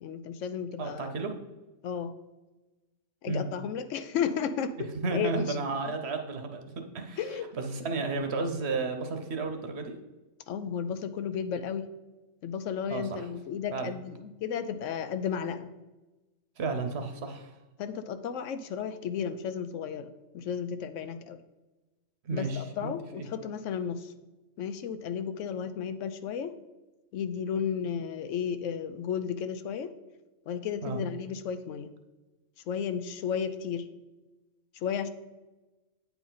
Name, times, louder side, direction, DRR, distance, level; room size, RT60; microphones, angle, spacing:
voice 1, 0.0-1.1 1.8-2.1 3.2-5.5 7.2-7.5 10.5-11.9 12.4-15.7 17.8-21.4 22.3-24.1 24.6-26.5 27.1-29.9 30.5-31.9 32.7-33.9 34.8-35.1, left 7 dB, 75° left, 11 dB, 0.9 m, -33 dB
voice 2, 0.8-1.3 3.3-3.5 5.0-10.0 12.9-13.3 13.7-13.9 16.6-17.5 22.2-23.3 30.8-31.0, right 3 dB, 60° right, 6 dB, 1.0 m, -33 dB
8.9 x 4.7 x 3.9 m, 1.1 s
omnidirectional pair, 1.3 m